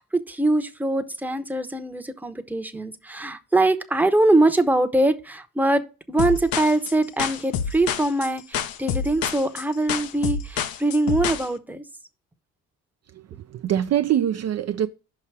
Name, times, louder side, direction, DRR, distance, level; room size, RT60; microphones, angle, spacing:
voice 1, 0.0-11.8, right 2 dB, 5° right, 0.8 m, -23 dB
sound 1, 6.2-11.5, left 7 dB, 75° left, 0.8 m, -28 dB
voice 2, 13.1-14.9, right 10 dB, 45° right, 0.4 m, -24 dB
5.6 x 4.8 x 5.7 m
cardioid pair, 90°, 35 cm